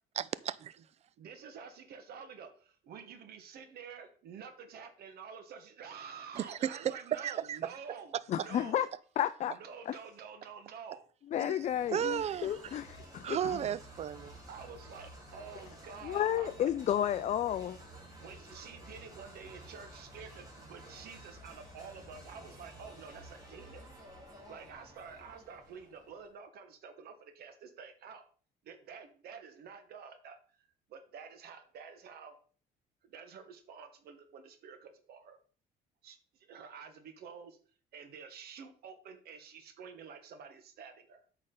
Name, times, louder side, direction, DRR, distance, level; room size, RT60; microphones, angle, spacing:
voice 1, 0.2-0.8 6.4-7.6 8.4-8.5 11.4-11.6 11.9-12.8 13.2-14.3, right 10 dB, 40° right, 0.4 m, -34 dB
voice 2, 1.2-8.8 9.4-11.1 14.5-17.0 18.2-23.9 24.5-28.2 28.6-32.4 33.0-35.4 36.0-37.6 37.9-41.2, right 6 dB, 65° right, 1.3 m, -49 dB
voice 3, 8.3-8.9 9.2-9.5 9.9-10.0 11.3-13.6 16.0-17.8, left 10 dB, 45° left, 0.4 m, -32 dB
sound 1, 11.5-26.2, right 1 dB, 20° right, 3.4 m, -52 dB
8.4 x 5.0 x 3.8 m
cardioid pair, 110°, 17 cm